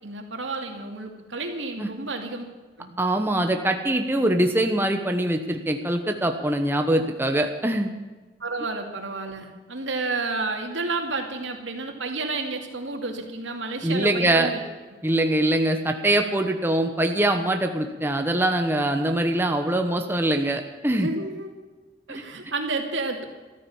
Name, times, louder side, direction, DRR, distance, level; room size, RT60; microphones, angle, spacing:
voice 1, 0.0-2.4 2.8-2.9 8.4-14.6 21.0-21.5 22.1-23.2, right 3 dB, 85° right, 4 dB, 2.5 m, -31 dB
voice 2, 3.0-7.9 13.8-14.5 15.0-21.1 22.1-22.2, right 1 dB, 10° right, 5 dB, 1.0 m, -23 dB
14.0 x 13.5 x 7.2 m, 1.3 s
head